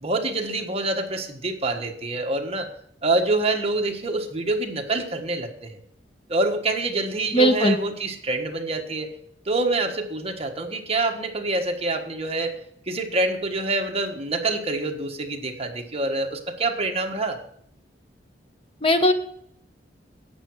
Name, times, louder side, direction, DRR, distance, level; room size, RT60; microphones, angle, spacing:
voice 1, 0.0-2.7 3.0-5.8 6.3-9.1 9.4-12.5 12.9-17.4, right 2 dB, 35° right, 3 dB, 1.4 m, -26 dB
voice 2, 7.3-7.8 18.8-19.1, equal, 30° left, 7 dB, 1.0 m, -18 dB
11.5 x 8.4 x 4.7 m, 0.67 s
head